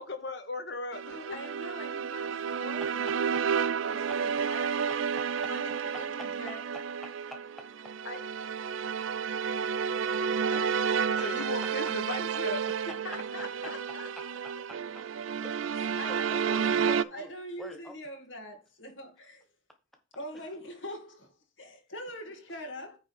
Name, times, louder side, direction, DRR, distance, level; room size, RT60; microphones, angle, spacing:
voice 1, 0.0-1.4 11.2-12.6, left 3 dB, 60° left, 1.4 m, -37 dB
sound 1, 0.9-17.0, right 7 dB, 80° right, 0.4 m, -31 dB
voice 2, 1.1-4.9 5.4-6.6 8.0-8.6 10.5-10.9 12.9-14.4 15.7-19.4 20.2-23.0, left 1 dB, 85° left, 2.2 m, -43 dB
voice 3, 2.8-3.1 7.0-7.1 11.1-13.2 13.6-13.7 14.2-15.0 15.3-17.3 17.6-18.0 20.3-20.5, left 1 dB, ahead, 1.3 m, -47 dB
9.4 x 3.7 x 5.6 m
head